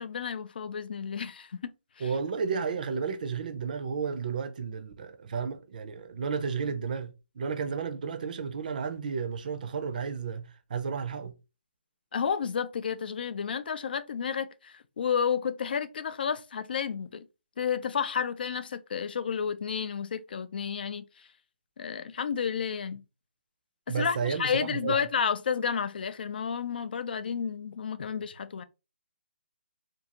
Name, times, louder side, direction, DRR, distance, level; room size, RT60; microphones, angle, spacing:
voice 1, 0.0-1.5 2.0-2.1 12.1-17.2 17.6-21.0 21.8-23.0 23.9-28.6, left 7 dB, 55° left, 0.4 m, -31 dB
voice 2, 2.0-11.3 23.9-25.0, right 5 dB, 45° right, 0.5 m, -32 dB
2.6 x 2.4 x 2.8 m
figure-of-eight pair, 150°, 6 cm